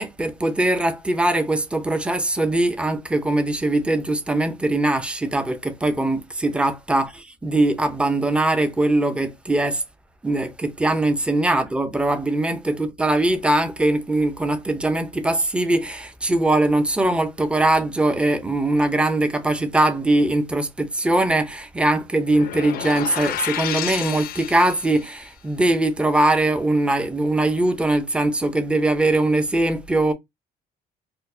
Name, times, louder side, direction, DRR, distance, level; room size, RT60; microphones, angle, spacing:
voice 1, 0.0-9.8 10.2-30.1, right 2 dB, 5° right, 0.5 m, -21 dB
sound 1, 22.3-25.1, left 11 dB, 60° left, 0.5 m, -30 dB
4.4 x 2.0 x 2.6 m
cardioid pair, 110°, 17 cm